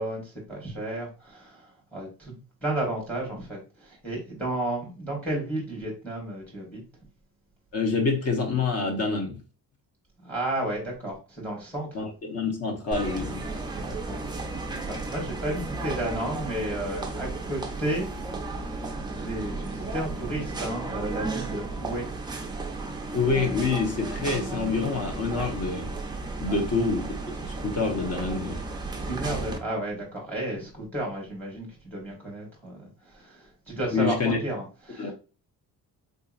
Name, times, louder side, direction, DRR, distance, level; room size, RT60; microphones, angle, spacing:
voice 1, 0.0-2.4 2.6-6.8 10.2-11.9 13.7-14.2 14.5-18.1 18.5-18.9 19.1-22.1 26.5-26.6 29.0-35.1, right 1 dB, 5° left, 1.1 m, -33 dB
voice 2, 7.7-9.4 11.9-13.4 23.1-25.9 26.4-27.1 27.6-28.6 33.9-34.4 35.0-35.1, left 4 dB, 40° left, 0.8 m, -26 dB
sound 1, 12.9-29.6, right 3 dB, 15° right, 0.3 m, -34 dB
3.7 x 2.7 x 2.4 m
cardioid pair, 170°, 37 cm